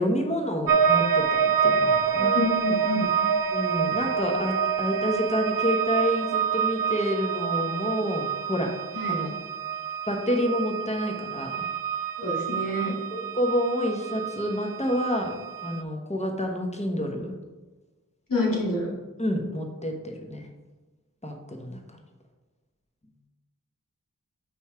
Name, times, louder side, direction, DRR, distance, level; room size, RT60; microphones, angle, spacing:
voice 1, 0.0-2.4 3.5-8.7 9.1-9.3 10.1-11.7 13.1-15.3 15.6-17.3 19.2-20.5 21.2-21.8, equal, 20° left, 2 dB, 1.1 m, -28 dB
sound 1, 0.7-15.8, right 7 dB, 90° right, 0.5 m, -27 dB
voice 2, 2.0-3.1 8.9-9.2 12.2-12.9 18.3-18.9, left 2 dB, 75° left, -5 dB, 2.1 m, -28 dB
5.5 x 4.5 x 5.7 m, 1.2 s
wide cardioid pair, 50°, 33 cm